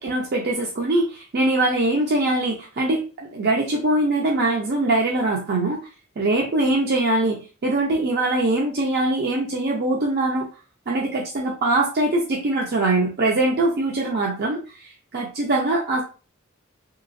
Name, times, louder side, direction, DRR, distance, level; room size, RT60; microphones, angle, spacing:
voice 1, 0.0-5.8 6.2-10.5 10.9-16.0, right 2 dB, 50° right, -1 dB, 0.5 m, -22 dB
3.3 x 2.9 x 2.5 m, 0.35 s
head